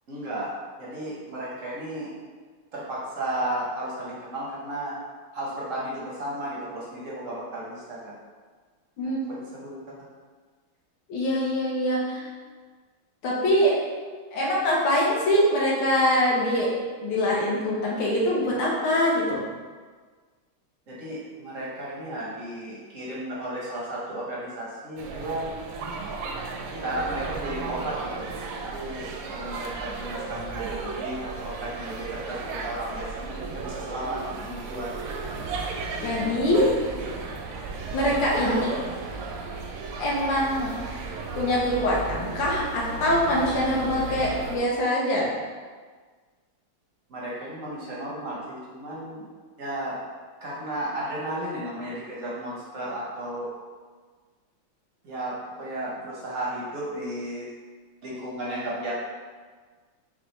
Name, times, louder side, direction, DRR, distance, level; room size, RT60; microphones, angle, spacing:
voice 1, 0.1-2.1 2.7-5.0 5.3-8.1 9.3-9.8 20.9-25.5 26.8-28.3 28.7-34.9 37.0-37.1 38.4-38.8 47.1-49.2 49.6-50.0 50.4-53.5 55.0-57.5 58.0-59.0, right 1 dB, 60° right, -6 dB, 0.8 m, -34 dB
voice 2, 9.0-9.3 11.1-12.3 13.2-13.8 14.3-16.7 17.0-19.4 36.0-36.7 37.9-38.7 40.0-40.7 41.4-45.3, left 1 dB, 70° left, -4 dB, 1.5 m, -23 dB
sound 1, 25.0-44.6, right 4 dB, 80° right, 1.4 m, -35 dB
6.0 x 2.2 x 3.1 m, 1.5 s
omnidirectional pair, 2.4 m